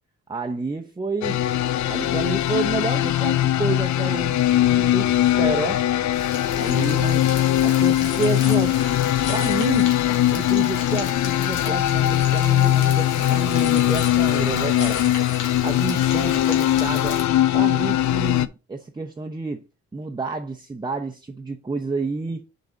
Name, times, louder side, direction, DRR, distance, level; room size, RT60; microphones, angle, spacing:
voice 1, 0.3-1.4 1.9-5.8 6.5-7.3 7.6-8.8 9.3-9.9 10.3-15.0 15.6-17.2 17.5-19.6 19.9-22.5, right 3 dB, 15° right, 0.9 m, -29 dB
sound 1, 1.2-18.5, left 13 dB, 70° left, 0.6 m, -21 dB
sound 2, 6.1-17.2, left 5 dB, 85° left, 2.3 m, -35 dB
6.7 x 4.0 x 4.9 m
cardioid pair, 90°, 30 cm